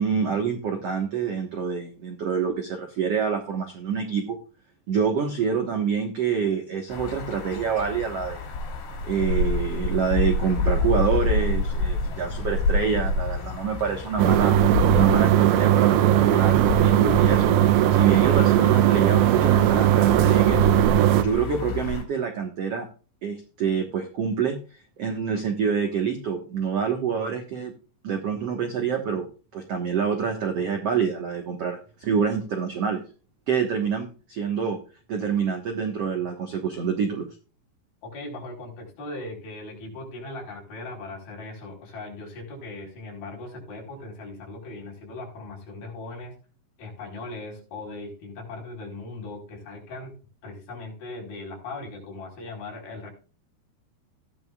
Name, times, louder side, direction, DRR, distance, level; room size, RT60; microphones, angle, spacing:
voice 1, 0.0-4.4 4.9-8.4 9.0-14.5 14.9-17.5 17.9-20.8 21.2-22.9 23.2-24.6 25.0-27.7 28.0-29.3 29.5-33.0 33.5-34.8 35.1-37.3, right 6 dB, 65° right, 4 dB, 1.5 m, -26 dB
sound 1, 6.9-22.0, left 3 dB, 75° left, 5.3 m, -28 dB
sound 2, 9.3-18.2, left 5 dB, ahead, 7.1 m, -45 dB
sound 3, 14.2-21.2, right 13 dB, 85° right, 2.2 m, -19 dB
voice 2, 38.0-46.3 46.8-50.2 50.4-53.1, left 2 dB, 55° left, -1 dB, 6.1 m, -39 dB
15.5 x 11.0 x 2.4 m, 0.36 s
omnidirectional pair, 5.0 m